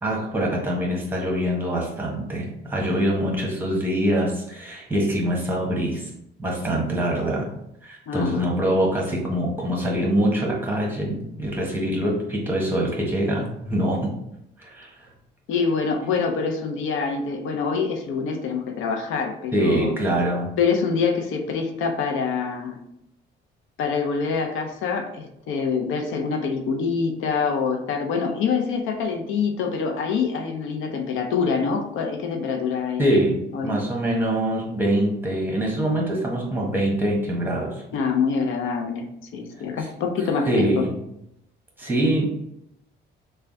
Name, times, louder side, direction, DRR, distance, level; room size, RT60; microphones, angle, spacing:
voice 1, 0.0-6.1 6.4-7.5 7.8-14.1 14.6-15.1 19.5-20.5 33.0-37.8 39.8-39.9 40.4-40.9 41.8-42.2, right 1 dB, 10° right, -2 dB, 1.2 m, -24 dB
voice 2, 8.1-8.6 15.5-19.9 20.6-22.8 23.8-33.0 33.5-33.8 37.9-40.8, left 5 dB, 90° left, 4 dB, 0.6 m, -25 dB
3.3 x 2.3 x 3.9 m, 0.80 s
cardioid pair, 90°, 20 cm